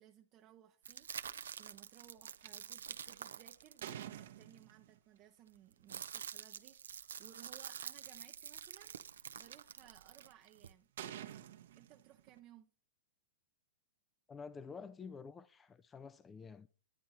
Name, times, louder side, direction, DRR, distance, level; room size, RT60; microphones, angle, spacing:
voice 1, 0.0-10.9 11.8-12.7, right 12 dB, 35° right, 0.7 m, -61 dB
sound 1, 0.8-4.6 5.5-10.7, right 7 dB, 85° right, 0.6 m, -48 dB
sound 2, 2.4-2.5 3.1-5.0 6.3-6.4 7.1-7.2 7.4-7.8 8.6-9.6 10.2-10.5 11.0-12.4, right 11 dB, 65° right, 1.0 m, -49 dB
voice 2, 14.3-16.7, left 5 dB, 15° left, 0.4 m, -49 dB
10.5 x 9.3 x 4.2 m
hypercardioid pair, 130°, 0 cm